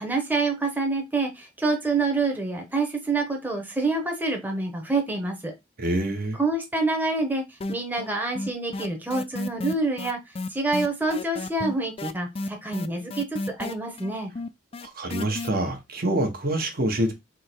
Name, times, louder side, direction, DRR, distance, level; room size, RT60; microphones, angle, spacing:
voice 1, 0.0-5.5 6.4-7.4 7.7-10.2 10.5-14.3, right 3 dB, 10° right, 0.9 m, -27 dB
voice 2, 5.8-6.4 14.8-17.1, right 1 dB, 55° right, 1.2 m, -26 dB
sound 1, 7.6-8.1 8.4-15.5, left 2 dB, 35° left, 0.4 m, -32 dB
3.7 x 3.1 x 4.5 m
head